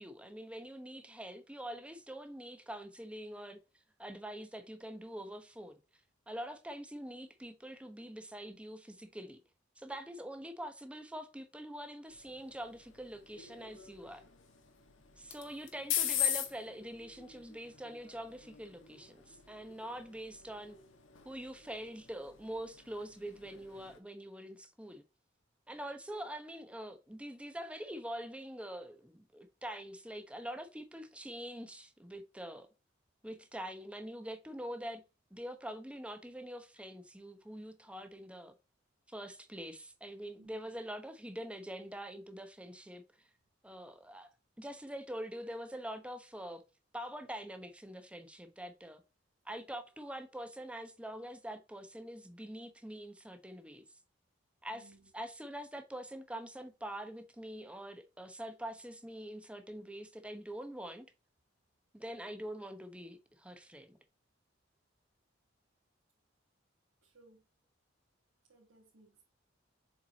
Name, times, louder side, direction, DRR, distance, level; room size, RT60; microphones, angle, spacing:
voice 1, 0.0-3.6 4.0-5.8 6.3-9.4 9.8-14.3 15.2-20.8 21.2-25.0 25.7-32.7 33.2-35.0 35.3-38.5 39.1-43.3 43.6-44.3 44.6-46.6 46.9-49.0 49.4-53.9 54.6-61.1 61.9-64.0, right 1 dB, 5° right, 1.0 m, -45 dB
sound 1, 12.1-24.0, left 10 dB, 75° left, 1.4 m, -41 dB
voice 2, 40.4-40.7 54.7-55.1 67.0-67.4 68.5-69.2, right 2 dB, 85° right, 2.0 m, -62 dB
7.4 x 4.6 x 2.9 m
head